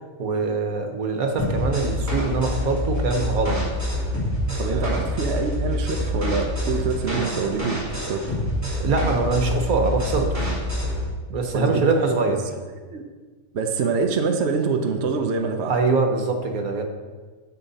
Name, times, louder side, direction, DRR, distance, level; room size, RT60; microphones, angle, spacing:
voice 1, 0.2-3.6 4.7-5.0 8.8-10.6 11.3-12.4 15.6-16.8, right 3 dB, 75° right, 4 dB, 1.6 m, -23 dB
sound 1, 1.4-11.1, left 1 dB, 10° right, 2.8 m, -26 dB
voice 2, 4.6-8.3 11.5-11.8 12.9-13.0 13.5-15.7, right 4 dB, 55° right, 4 dB, 0.9 m, -25 dB
11.0 x 6.9 x 4.1 m, 1.4 s
omnidirectional pair, 1.5 m